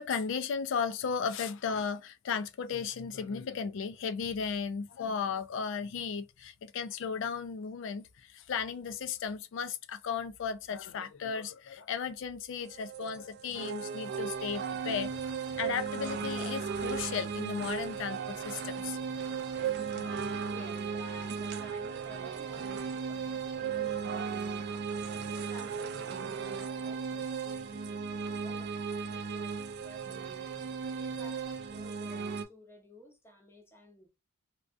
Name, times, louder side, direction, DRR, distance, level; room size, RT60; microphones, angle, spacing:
voice 1, 0.0-15.2 15.6-19.0 19.3-20.1, left 6 dB, 65° left, 0.3 m, -35 dB
sound 1, 12.6-32.4, right 6 dB, 55° right, 0.3 m, -36 dB
sound 2, 14.1-31.9, right 2 dB, 35° right, 0.8 m, -61 dB
voice 2, 20.4-24.9 25.3-30.4 31.0-34.1, left 1 dB, 10° left, 0.6 m, -54 dB
2.3 x 2.2 x 2.4 m
head